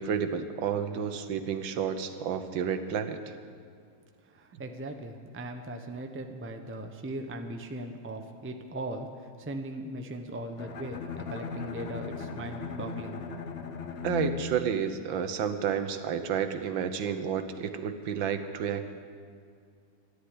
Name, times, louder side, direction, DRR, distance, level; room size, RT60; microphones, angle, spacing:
voice 1, 0.0-3.3 14.0-18.9, right 7 dB, 85° right, 9 dB, 1.7 m, -31 dB
voice 2, 4.3-9.1 9.4-13.2, right 1 dB, 15° right, 5 dB, 0.5 m, -39 dB
Bowed string instrument, 10.6-15.6, left 5 dB, 50° left, 0.8 m, -38 dB
13.5 x 11.0 x 9.6 m, 2.2 s
omnidirectional pair, 2.0 m